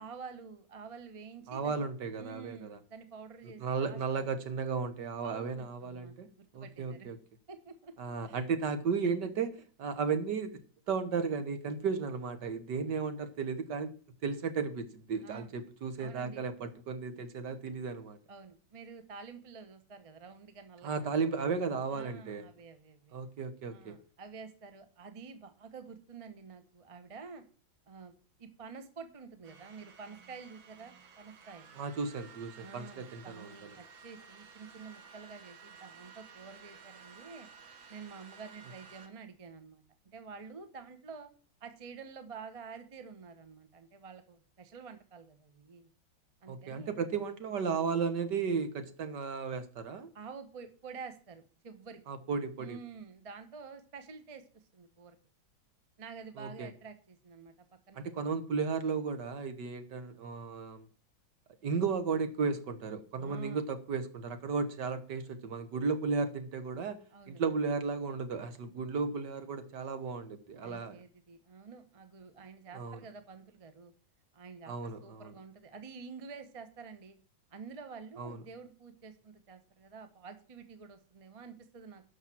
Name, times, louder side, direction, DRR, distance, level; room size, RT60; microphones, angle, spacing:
voice 1, 0.0-1.8 2.2-4.3 5.2-7.1 7.5-8.5 12.8-13.1 15.2-15.5 16.0-16.5 18.3-21.1 21.9-23.1 23.7-27.4 27.9-28.1 28.4-31.8 32.6-37.5 37.9-39.8 40.1-41.3 41.6-45.9 46.4-46.9 50.1-52.0 52.6-55.2 56.0-57.5 57.9-58.3 63.2-63.7 67.1-67.4 70.6-73.9 74.3-77.2 77.5-82.0, right 5 dB, 25° right, 9 dB, 0.8 m, -49 dB
voice 2, 1.5-2.8 3.6-7.2 8.0-9.5 9.8-10.6 10.9-13.9 14.2-18.2 20.8-22.5 23.1-24.0 31.8-33.7 46.5-50.1 52.1-52.8 56.4-56.7 58.0-60.9 61.6-67.0 67.3-71.0 72.7-73.1 74.7-75.3 78.2-78.4, right 5 dB, 65° right, 10 dB, 1.7 m, -34 dB
sound 1, 29.4-39.1, right 6 dB, 80° right, 2.2 m, -54 dB
12.0 x 5.7 x 6.0 m, 0.40 s
omnidirectional pair, 2.1 m